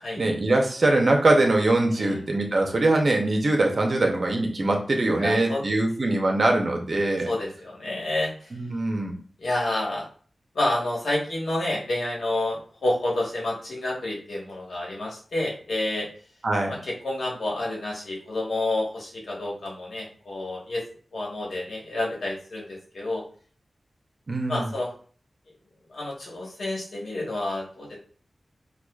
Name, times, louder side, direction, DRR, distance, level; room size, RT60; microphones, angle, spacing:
voice 1, 0.2-7.3 8.5-9.2 16.4-16.7 24.3-24.7, right 2 dB, 55° right, 2 dB, 0.7 m, -22 dB
voice 2, 5.2-5.6 7.2-8.5 9.4-10.1 10.5-16.1 16.7-20.8 21.1-23.2 24.5-24.9 25.9-28.0, left 1 dB, 80° left, -3 dB, 1.2 m, -29 dB
4.7 x 2.3 x 2.3 m, 0.43 s
wide cardioid pair, 80°, 0 cm